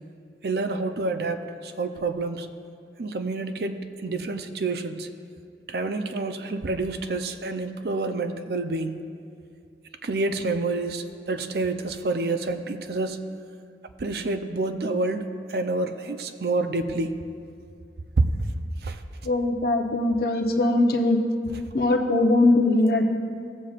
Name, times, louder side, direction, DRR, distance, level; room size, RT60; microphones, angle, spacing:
voice 1, 0.4-2.5 3.0-5.1 5.7-9.0 10.0-13.2 14.0-17.1 18.2-18.3 18.8-19.0, right 3 dB, 60° right, 8 dB, 0.5 m, -28 dB
voice 2, 19.2-21.2 21.7-23.0, left 2 dB, 60° left, 2 dB, 0.8 m, -21 dB
16.5 x 7.4 x 2.5 m, 2.4 s
head